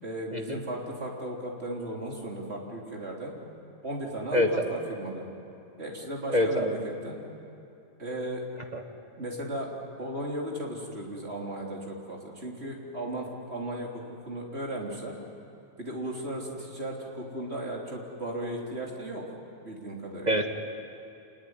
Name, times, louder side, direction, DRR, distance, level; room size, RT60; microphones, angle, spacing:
voice 1, 0.0-3.4 3.8-5.2 5.8-6.8 7.0-7.2 8.0-8.4 9.2-9.7 10.0-15.1 15.8-19.2 19.6-20.3, right 1 dB, 50° right, -1 dB, 3.8 m, -36 dB
voice 2, 4.3-4.7 6.3-6.7 8.7-8.8 20.3-20.5, equal, 30° right, 3 dB, 1.6 m, -25 dB
27.5 x 20.5 x 9.8 m, 2.7 s
omnidirectional pair, 1.5 m